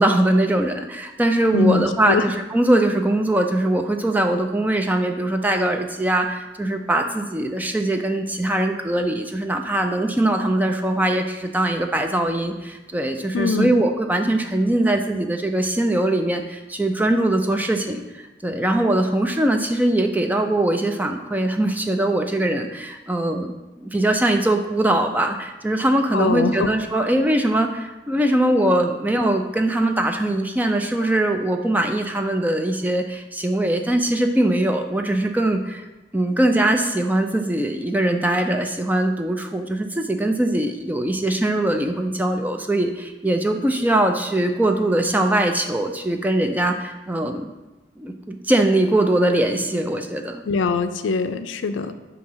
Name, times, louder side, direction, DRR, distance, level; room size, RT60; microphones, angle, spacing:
voice 1, 0.0-35.8 36.1-47.5 48.0-50.4, right 1 dB, 10° right, 5 dB, 0.4 m, -21 dB
voice 2, 1.5-2.2 13.3-13.7 26.1-27.1 50.5-51.9, left 3 dB, 80° left, 10 dB, 0.4 m, -22 dB
7.3 x 2.8 x 5.5 m, 1.1 s
head